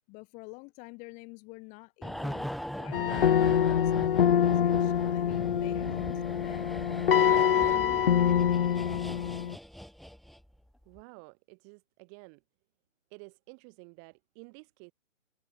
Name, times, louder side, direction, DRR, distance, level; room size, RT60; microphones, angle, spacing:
voice 1, 0.1-8.3, left 28 dB, 20° left, 2.4 m, -48 dB
sound 1, 2.0-10.6 10.8-11.0, equal, ahead, 1.3 m, -40 dB
sound 2, 2.9-9.5, left 9 dB, 45° left, 0.6 m, -25 dB
voice 2, 10.9-12.4 13.1-14.9, right 40 dB or more, 20° right, 2.2 m, -51 dB
figure-of-eight pair, 145°, 38 cm